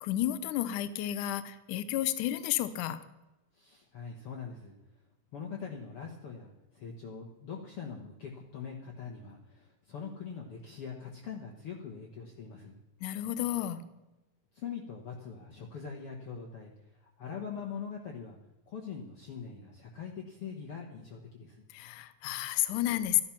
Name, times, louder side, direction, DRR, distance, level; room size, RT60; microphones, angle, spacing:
voice 1, 0.0-3.0 13.0-13.8 21.7-23.2, left 13 dB, 80° left, 13 dB, 2.2 m, -31 dB
voice 2, 3.5-4.8 5.3-12.8 14.5-18.4 18.7-21.6, left 6 dB, 55° left, 0 dB, 1.9 m, -43 dB
13.0 x 12.0 x 5.8 m, 1.0 s
omnidirectional pair, 3.8 m